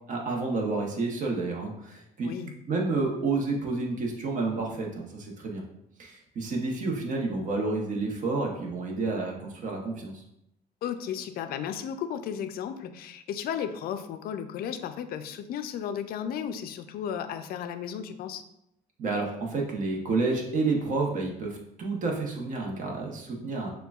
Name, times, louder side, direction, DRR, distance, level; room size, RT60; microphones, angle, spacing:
voice 1, 0.1-2.3 2.7-5.6 6.0-10.2 19.0-23.7, right 3 dB, 50° right, 0 dB, 0.9 m, -30 dB
voice 2, 10.8-18.4, left 8 dB, 65° left, 9 dB, 0.4 m, -34 dB
6.5 x 2.3 x 2.3 m, 0.78 s
cardioid pair, 110°, 17 cm